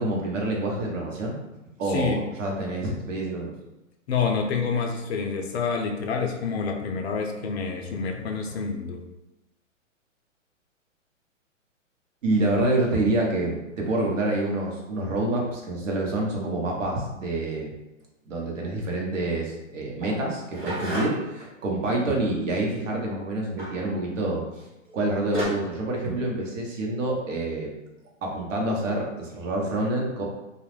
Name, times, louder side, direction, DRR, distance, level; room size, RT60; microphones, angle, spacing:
voice 1, 0.0-1.4 1.8-3.5 12.2-17.7 18.3-24.7 24.9-27.7 28.2-30.2, right 2 dB, 70° right, -1 dB, 0.9 m, -27 dB
voice 2, 1.9-2.3 4.1-9.0 21.0-21.1, left 5 dB, 55° left, 3 dB, 0.5 m, -28 dB
sound 1, 20.0-21.4 23.6-23.9 24.9-25.0 25.3-25.5, equal, 30° right, 1.0 m, -32 dB
2.3 x 2.0 x 3.1 m, 0.96 s
hypercardioid pair, 135°, 39 cm